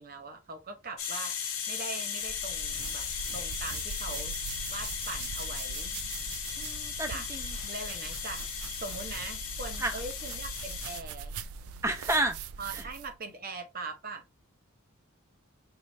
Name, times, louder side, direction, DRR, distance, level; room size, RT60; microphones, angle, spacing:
voice 1, 0.0-1.3 1.7-3.1 3.3-4.4 4.7-5.9 7.1-7.3 7.6-11.4 12.6-14.3, right 3 dB, 40° right, 0.8 m, -41 dB
Gas Leak, 1.0-11.0, left 7 dB, 75° left, 0.9 m, -36 dB
sound 1, 2.2-13.2, right 6 dB, 85° right, 0.4 m, -42 dB
voice 2, 6.6-7.6 9.8-9.9 11.8-12.4 12.7-12.8, right 1 dB, 15° right, 0.5 m, -30 dB
4.6 x 2.5 x 3.2 m
head